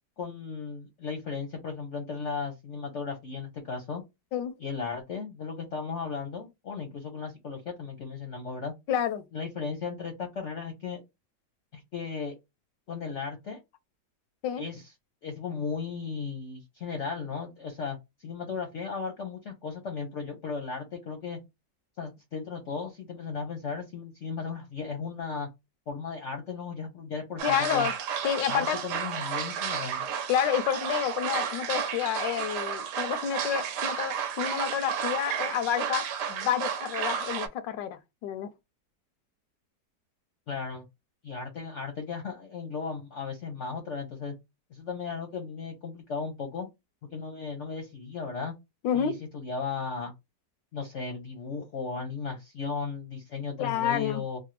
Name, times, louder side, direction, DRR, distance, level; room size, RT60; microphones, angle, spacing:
voice 1, 0.2-4.0 4.6-8.7 9.3-11.0 11.7-12.3 12.9-13.6 14.6-14.9 15.2-21.4 22.0-25.5 25.9-27.9 28.5-30.0 40.5-40.9 41.2-44.3 44.7-46.7 47.1-48.5 48.9-50.1 50.7-54.4, left 5 dB, 60° left, 0.8 m, -36 dB
voice 2, 8.9-9.3 14.4-14.6 27.4-27.9 28.2-28.8 30.3-38.5 48.8-49.2 53.6-54.2, left 9 dB, 85° left, 1.2 m, -29 dB
sound 1, 27.4-37.5, right 8 dB, 75° right, 1.2 m, -32 dB
3.3 x 2.1 x 3.0 m
omnidirectional pair, 1.9 m